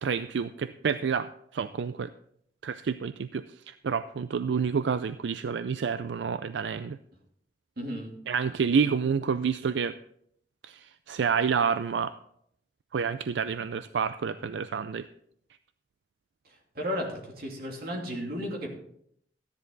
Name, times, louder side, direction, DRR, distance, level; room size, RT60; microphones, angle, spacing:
voice 1, 0.0-2.1 2.6-7.0 8.3-9.9 10.6-12.1 12.9-15.1, right 6 dB, 85° right, 12 dB, 0.4 m, -29 dB
voice 2, 7.8-8.1 16.7-18.7, equal, 60° right, -1 dB, 2.8 m, -34 dB
13.5 x 10.0 x 3.9 m, 0.70 s
head